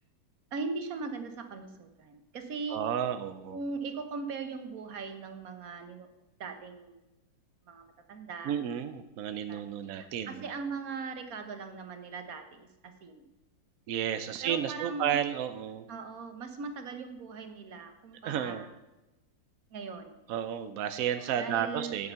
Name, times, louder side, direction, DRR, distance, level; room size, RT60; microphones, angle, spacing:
voice 1, 0.5-2.9 3.5-6.1 6.4-7.0 7.7-8.5 9.5-9.6 10.0-13.2 14.4-15.2 15.9-18.7 19.7-20.2 21.2-22.0, right 4 dB, 55° right, 7 dB, 1.4 m, -39 dB
voice 2, 2.7-3.6 8.4-10.4 13.9-15.9 18.2-18.6 20.3-22.1, right 9 dB, 70° right, 9 dB, 0.8 m, -32 dB
9.4 x 8.1 x 5.6 m, 1.0 s
omnidirectional pair, 2.0 m